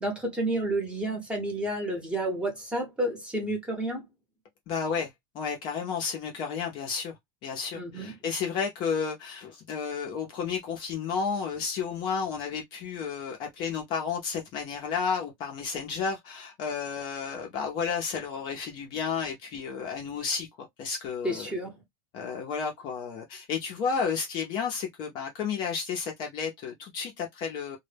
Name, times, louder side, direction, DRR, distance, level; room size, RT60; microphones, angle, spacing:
voice 1, 0.0-4.0 7.7-8.1 21.2-21.7, right 1 dB, 5° right, 0.8 m, -30 dB
voice 2, 4.7-7.1 7.4-21.5 22.1-27.8, left 6 dB, 35° left, 0.5 m, -32 dB
2.1 x 2.0 x 3.2 m
supercardioid pair, 165°, 14 cm